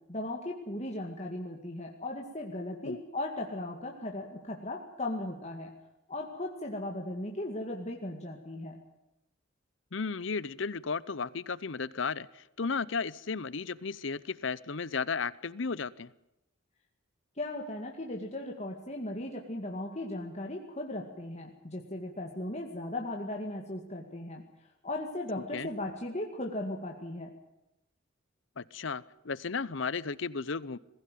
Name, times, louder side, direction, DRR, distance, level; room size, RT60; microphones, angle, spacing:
voice 1, 0.1-5.7 6.1-8.8 17.4-24.4 24.8-27.3, left 1 dB, 35° left, 1 dB, 2.2 m, -37 dB
voice 2, 9.9-16.1 25.5-25.7 28.6-30.8, left 5 dB, 65° left, 19 dB, 0.8 m, -34 dB
21.5 x 15.5 x 9.3 m, 0.88 s
head